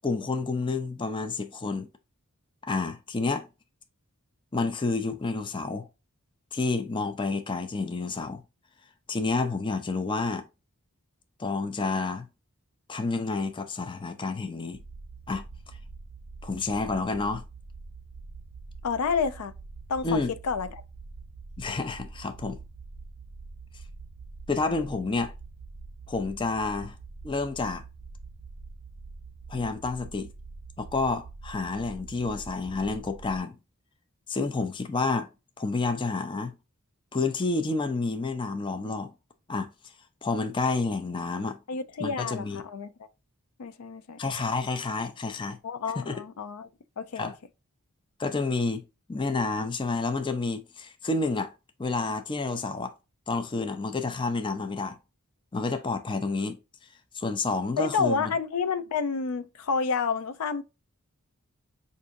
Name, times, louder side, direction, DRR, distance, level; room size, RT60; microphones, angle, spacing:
voice 1, 0.0-1.9 2.7-3.5 4.5-5.9 6.5-8.4 9.1-10.4 11.4-12.3 12.9-14.8 15.3-15.4 16.4-17.4 20.0-20.3 21.6-22.6 24.5-25.3 26.1-26.9 27.2-27.8 29.5-30.3 30.8-33.6 34.3-35.3 35.6-36.5 37.1-39.1 39.5-39.7 40.2-41.6 42.0-42.6 44.2-45.6 46.1-46.2 47.2-47.4 48.2-48.8 49.1-51.5 51.8-52.9 53.3-55.0 55.5-56.6 57.1-58.3, left 3 dB, 20° left, 0.4 m, -29 dB
sound 1, 14.7-33.4, right 3 dB, 70° right, 0.5 m, -45 dB
voice 2, 18.8-19.5 19.9-20.8 41.7-42.9 43.6-44.2 45.6-46.7 47.0-47.3 57.8-60.6, left 5 dB, 85° left, 0.4 m, -29 dB
4.9 x 2.6 x 2.5 m
head